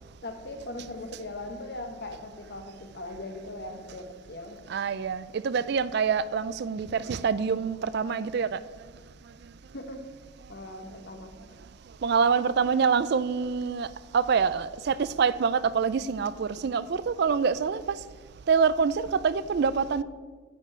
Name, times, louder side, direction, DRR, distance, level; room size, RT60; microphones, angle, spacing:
voice 1, 0.2-4.6 9.7-10.1 10.5-11.3, left 1 dB, 50° left, 6 dB, 1.1 m, -39 dB
voice 2, 4.7-8.6 12.0-13.9 14.1-17.8 18.5-20.0, right 6 dB, 55° right, 17 dB, 0.3 m, -25 dB
10.0 x 5.4 x 8.2 m, 1.5 s
head